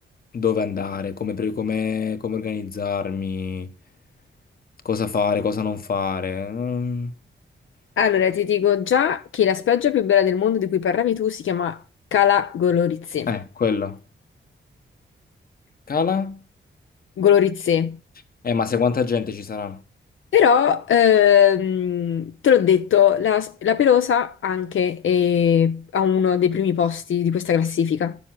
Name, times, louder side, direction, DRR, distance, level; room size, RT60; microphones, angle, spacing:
voice 1, 0.3-3.7 4.8-7.1 13.3-14.0 15.9-16.4 18.4-19.8, left 6 dB, 50° left, 1.2 m, -25 dB
voice 2, 8.0-11.8 12.1-13.3 17.2-18.0 20.3-28.2, left 9 dB, 80° left, 0.7 m, -19 dB
11.5 x 7.1 x 5.9 m
wide cardioid pair, 140°, 20 cm